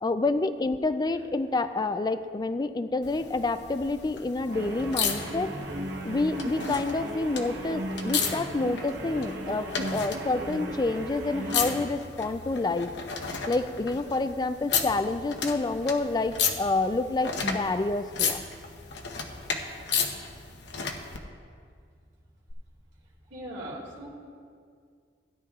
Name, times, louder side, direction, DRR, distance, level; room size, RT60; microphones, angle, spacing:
voice 1, 0.0-5.6 6.0-13.0 13.5-18.4, left 3 dB, 20° left, 11 dB, 0.3 m, -28 dB
sound 1, 3.0-21.2 22.5-22.6, left 6 dB, 65° left, 0.9 m, -34 dB
sound 2, 4.5-11.9, right 1 dB, 65° right, 1.0 m, -36 dB
voice 2, 23.3-24.1, right 1 dB, 85° right, -5 dB, 2.3 m, -39 dB
16.5 x 10.0 x 2.4 m, 2.1 s
head